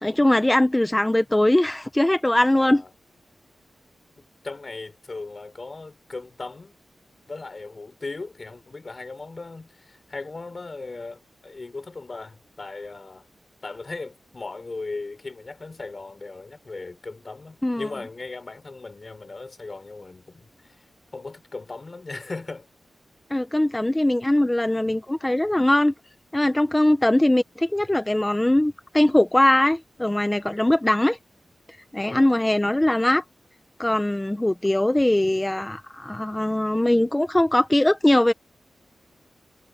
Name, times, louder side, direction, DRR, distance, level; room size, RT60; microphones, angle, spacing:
voice 1, 0.0-2.8 17.6-17.9 23.3-25.9 26.3-31.2 31.9-33.2 33.8-38.3, left 1 dB, 10° left, 0.9 m, -21 dB
voice 2, 2.5-2.9 4.2-6.8 7.3-13.3 13.6-20.8 21.1-22.7 32.0-32.3, left 3 dB, 35° left, 6.7 m, -37 dB
wide cardioid pair, 135°, 0 cm